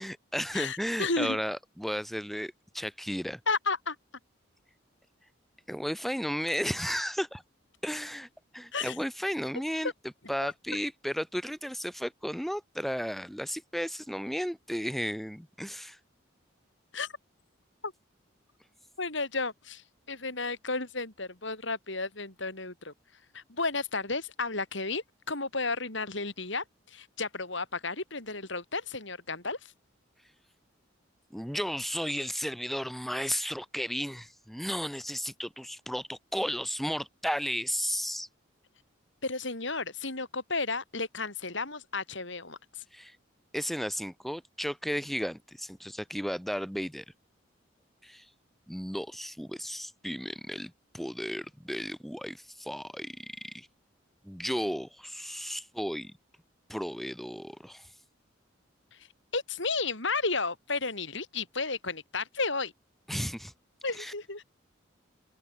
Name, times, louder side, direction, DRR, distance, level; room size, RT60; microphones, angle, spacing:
voice 1, 0.0-3.4 5.7-7.4 7.8-8.3 8.5-9.9 10.3-16.0 31.3-38.3 42.9-43.2 43.5-47.0 48.0-48.3 48.7-53.7 54.2-56.1 56.7-57.9 63.1-63.5 64.0-64.1, equal, ahead, 5.6 m, -34 dB
voice 2, 0.5-1.4 3.5-4.0 8.7-9.0 16.9-17.1 17.8-17.9 19.0-22.9 23.3-29.6 39.2-42.8 58.9-59.0 59.3-62.7 63.8-64.4, left 3 dB, 65° left, 5.5 m, -33 dB
open air
head